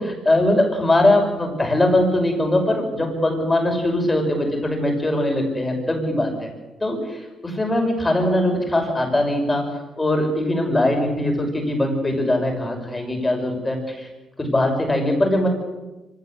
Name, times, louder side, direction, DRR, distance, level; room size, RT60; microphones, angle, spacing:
voice 1, 0.0-6.5 6.8-9.7 10.0-14.1 14.4-15.5, left 1 dB, 15° left, 3 dB, 6.3 m, -21 dB
25.0 x 17.0 x 8.3 m, 1.1 s
cardioid pair, 90°, 0 cm